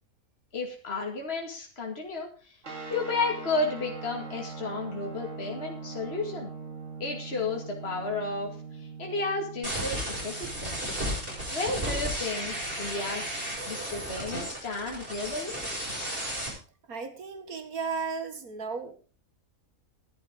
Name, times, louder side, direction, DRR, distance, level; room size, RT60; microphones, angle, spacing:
voice 1, 0.5-2.5 2.9-6.5 7.0-8.5 9.0-10.8 11.5-13.3 13.7-15.5, left 3 dB, 45° left, 0 dB, 2.5 m, -32 dB
sound 1, 2.6-13.8, right 4 dB, 60° right, 2.4 m, -42 dB
sound 2, 9.6-16.5, equal, 40° right, 6.3 m, -34 dB
voice 2, 16.9-19.0, right 5 dB, 85° right, 8 dB, 2.2 m, -34 dB
13.0 x 10.5 x 5.2 m, 0.37 s
omnidirectional pair, 1.5 m